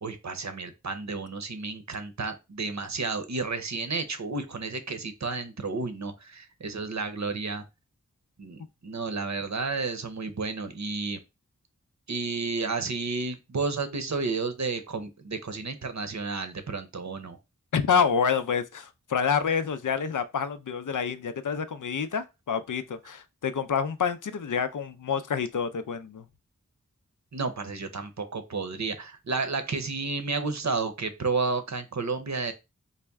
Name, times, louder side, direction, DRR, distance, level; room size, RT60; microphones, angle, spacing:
voice 1, 0.0-7.6 8.4-11.2 12.1-17.4 27.3-32.5, right 4 dB, 60° right, 0.7 m, -31 dB
voice 2, 17.7-26.2, left 6 dB, 75° left, 0.5 m, -28 dB
4.1 x 2.1 x 3.4 m
wide cardioid pair, 45°, 31 cm